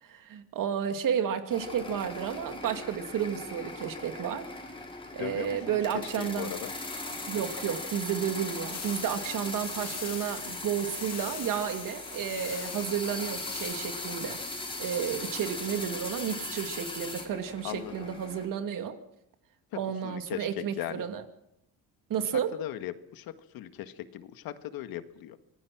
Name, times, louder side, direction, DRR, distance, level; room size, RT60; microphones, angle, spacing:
voice 1, 0.0-4.5 5.1-6.5 7.3-14.4 14.8-19.0 19.7-21.2 22.1-22.6, right 8 dB, 65° right, 7 dB, 2.6 m, -32 dB
sound 1, 1.5-18.5, left 2 dB, 15° left, 4.8 m, -39 dB
voice 2, 5.2-6.7 17.6-18.1 19.7-21.0 22.3-25.4, left 12 dB, 85° left, 9 dB, 1.8 m, -38 dB
sound 2, 8.7-13.7, left 10 dB, 45° left, 1.2 m, -43 dB
25.5 x 19.0 x 6.1 m, 0.79 s
cardioid pair, 120°, 35 cm